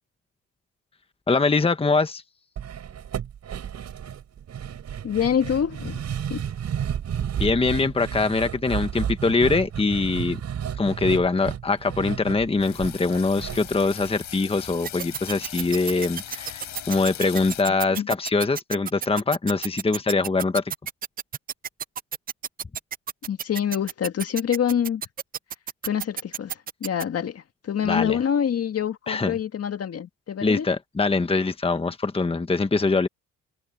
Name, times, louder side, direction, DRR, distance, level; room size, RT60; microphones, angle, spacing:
voice 1, 1.3-2.2 7.4-10.4 10.7-20.6 27.8-28.2 29.1-29.4 30.4-33.1, left 3 dB, 20° left, 1.4 m, -23 dB
sound 1, 2.6-14.8 15.1-15.2 15.6-15.7, right 9 dB, 60° right, 4.6 m, -32 dB
voice 2, 5.0-6.0 6.3-6.4 17.9-18.1 23.3-25.0 25.8-30.7, left 8 dB, 50° left, 1.9 m, -26 dB
sound 2, 12.6-17.6, left 11 dB, 75° left, 5.0 m, -40 dB
sound 3, 14.8-27.0, right 8 dB, 30° right, 0.4 m, -31 dB
cardioid pair, 90°, 30 cm